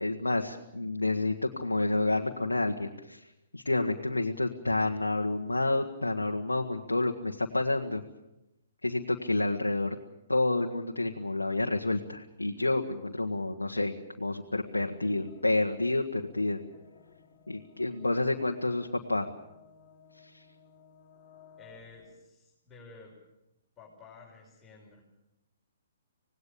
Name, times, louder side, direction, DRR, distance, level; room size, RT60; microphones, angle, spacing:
voice 1, 0.0-3.2 3.5-8.0 8.8-10.0 10.3-16.6 17.5-19.3 20.2-20.4, left 2 dB, 85° left, 1 dB, 1.4 m, -29 dB
sound 1, 14.4-22.1, left 7 dB, 35° left, 3.4 m, -58 dB
voice 2, 21.6-23.2 23.8-25.0, left 3 dB, 15° left, -4 dB, 5.8 m, -52 dB
26.0 x 19.0 x 7.0 m, 0.90 s
figure-of-eight pair, 125°, 0 cm